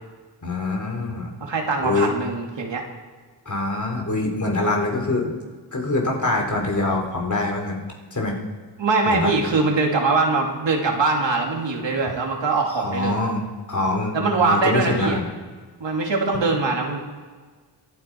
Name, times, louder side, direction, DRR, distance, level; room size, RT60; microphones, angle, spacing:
voice 1, 0.4-1.3 1.8-2.1 3.4-5.3 5.7-7.8 8.1-8.3 9.1-9.3 12.7-13.4 13.7-15.2, left 2 dB, 40° left, 0 dB, 3.4 m, -24 dB
voice 2, 1.4-2.8 8.8-13.2 14.1-15.2 15.8-17.0, right 3 dB, 70° right, 1 dB, 2.8 m, -22 dB
24.0 x 9.6 x 4.7 m, 1.4 s
wide cardioid pair, 85°, 46 cm